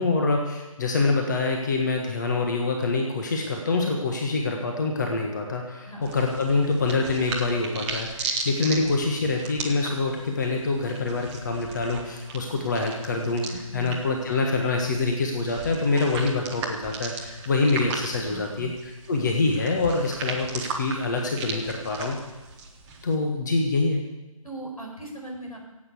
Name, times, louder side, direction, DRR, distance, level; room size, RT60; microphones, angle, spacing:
voice 1, 0.0-22.2 23.0-24.0, left 3 dB, 30° left, 1 dB, 1.5 m, -25 dB
sound 1, 6.0-23.2, right 4 dB, 10° right, 0.8 m, -37 dB
voice 2, 13.5-14.0 18.3-18.7 24.4-25.6, right 2 dB, 85° left, 1 dB, 5.3 m, -38 dB
16.0 x 8.6 x 8.2 m, 1.1 s
figure-of-eight pair, 155°, 18 cm